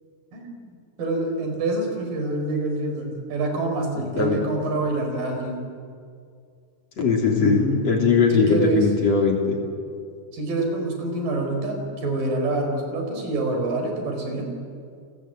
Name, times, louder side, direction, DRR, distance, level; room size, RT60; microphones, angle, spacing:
voice 1, 0.3-0.6 1.0-5.7 7.4-7.9 8.3-8.9 10.3-14.5, right 2 dB, 65° right, 3 dB, 6.0 m, -26 dB
voice 2, 4.0-4.4 7.0-9.6, left 5 dB, 45° left, 1 dB, 4.2 m, -20 dB
30.0 x 21.0 x 9.0 m, 2.3 s
omnidirectional pair, 4.3 m